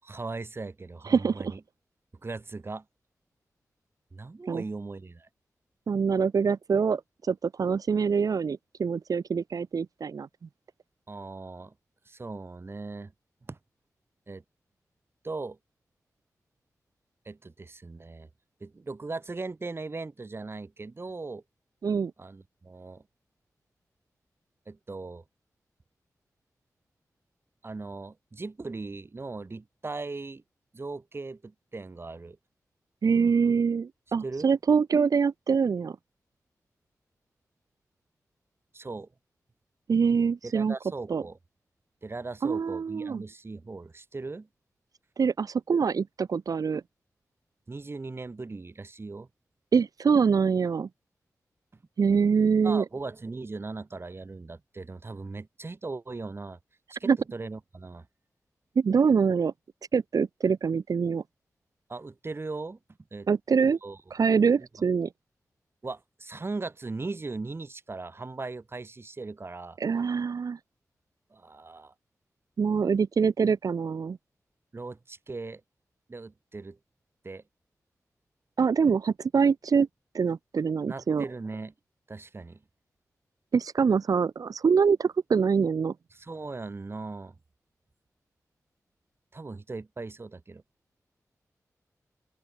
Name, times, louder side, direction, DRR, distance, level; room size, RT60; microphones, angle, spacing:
voice 1, 0.0-1.6 2.2-2.8 4.1-5.3 11.1-11.7 12.1-13.1 13.5-13.6 14.3-14.4 15.2-15.6 17.2-18.3 18.6-21.4 22.2-23.0 24.7-25.2 27.6-30.4 30.7-32.4 34.2-34.5 38.7-39.1 40.4-41.4 42.0-44.5 47.7-49.3 52.6-56.6 57.0-58.1 61.9-62.8 63.1-63.3 63.8-64.0 65.8-69.8 71.3-71.9 74.7-75.6 76.1-76.8 77.2-77.4 80.9-81.7 82.1-82.6 86.1-87.3 89.3-90.6, right 3 dB, 40° right, 7.9 m, -38 dB
voice 2, 1.0-1.5 4.5-4.6 5.9-10.3 21.8-22.1 33.0-36.0 39.9-40.7 41.1-41.2 42.4-43.2 45.2-46.8 49.7-50.9 52.0-52.8 57.1-57.2 58.8-59.5 59.9-61.2 63.3-63.8 64.1-65.1 69.8-70.6 72.6-74.2 78.6-79.9 80.1-81.2 83.5-85.9, right 5 dB, 80° right, 4.4 m, -24 dB
open air
wide cardioid pair, 85°, 6 cm